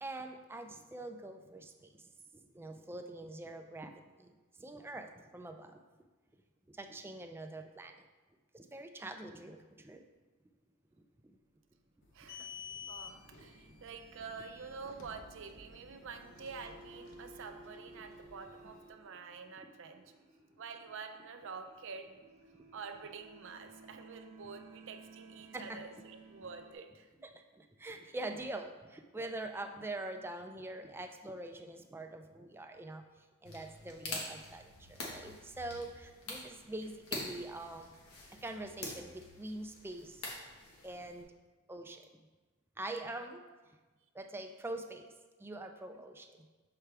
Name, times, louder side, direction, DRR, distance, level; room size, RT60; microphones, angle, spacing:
voice 1, 0.0-5.8 6.7-8.0 8.5-10.0 11.2-11.4 25.5-25.8 27.5-37.9 38.4-40.3 40.8-41.3 41.7-42.1 42.8-43.4 44.1-45.1 45.4-46.5, right 2 dB, 10° right, 5 dB, 0.3 m, -44 dB
sound 1, 8.9-9.7 12.1-26.7, right 3 dB, 30° right, 0.8 m, -58 dB
sound 2, 12.0-18.9, left 7 dB, 60° left, 0.8 m, -53 dB
voice 2, 12.1-12.5 12.9-20.1 20.6-22.2 22.7-27.3 43.0-43.3 45.9-46.0, right 5 dB, 60° right, 6 dB, 0.5 m, -48 dB
sound 3, 33.4-41.2, left 2 dB, 90° left, 1.4 m, -46 dB
6.8 x 4.7 x 3.3 m, 1.2 s
head